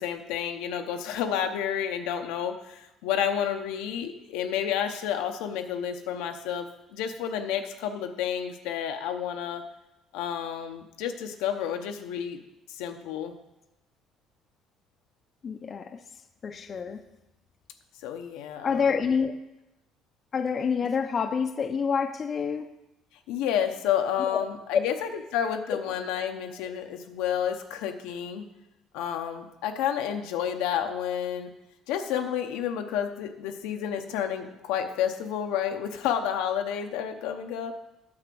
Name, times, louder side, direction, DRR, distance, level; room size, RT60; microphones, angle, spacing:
voice 1, 0.0-9.6 10.1-12.4 12.7-13.3 18.0-19.0 23.3-28.5 28.9-31.5 31.9-37.7, left 9 dB, 85° left, 5 dB, 0.8 m, -30 dB
voice 2, 15.4-16.0 16.4-17.0 18.6-19.3 20.3-22.7 24.3-24.4 24.7-24.8 25.7-25.8, left 6 dB, 40° left, 8 dB, 0.6 m, -27 dB
8.7 x 5.0 x 7.7 m, 0.92 s
cardioid pair, 105°, 0 cm